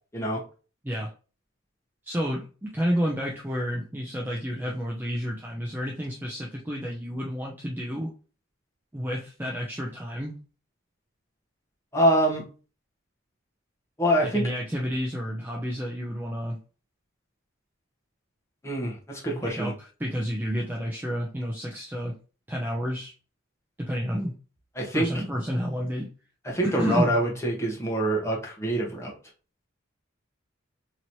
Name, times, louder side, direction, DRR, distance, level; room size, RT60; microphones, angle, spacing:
voice 1, 2.0-8.1 8.9-10.4 14.2-16.6 19.4-22.2 22.5-23.1 23.8-24.4 24.9-26.1 26.6-27.2, equal, 10° right, -2 dB, 0.4 m, -30 dB
voice 2, 11.9-12.4 14.0-14.4 18.6-19.7 24.8-25.1 26.4-29.2, right 1 dB, 15° left, -2 dB, 0.9 m, -25 dB
2.9 x 2.9 x 2.6 m, 0.35 s
head